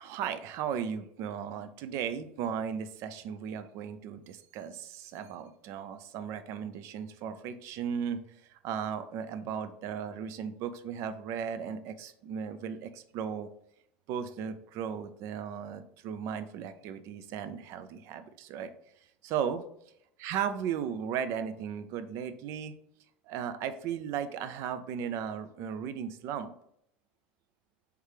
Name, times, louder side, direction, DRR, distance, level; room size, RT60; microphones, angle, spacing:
voice 1, 0.0-8.2 8.5-13.5 14.1-18.7 19.2-19.6 20.2-22.7 23.3-26.5, right 8 dB, 60° right, 11 dB, 0.5 m, -36 dB
3.3 x 3.2 x 4.8 m, 0.73 s
hypercardioid pair, 90°, 6 cm